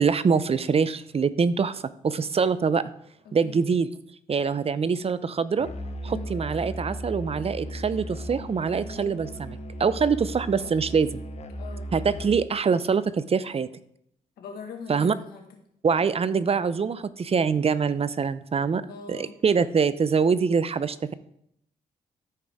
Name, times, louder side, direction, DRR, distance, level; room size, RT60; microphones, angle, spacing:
voice 1, 0.0-2.8 3.3-3.9 4.3-5.7 6.0-11.2 11.9-13.7 14.9-15.1 15.8-18.8 19.1-21.1, right 5 dB, 40° right, 15 dB, 0.6 m, -24 dB
Musical instrument, 5.6-12.5, equal, 45° left, 1.1 m, -37 dB
voice 2, 11.6-11.9 14.4-15.6 18.7-19.3, left 5 dB, 80° left, 3 dB, 1.8 m, -41 dB
13.0 x 5.1 x 3.6 m, 0.73 s
supercardioid pair, 55°, 16 cm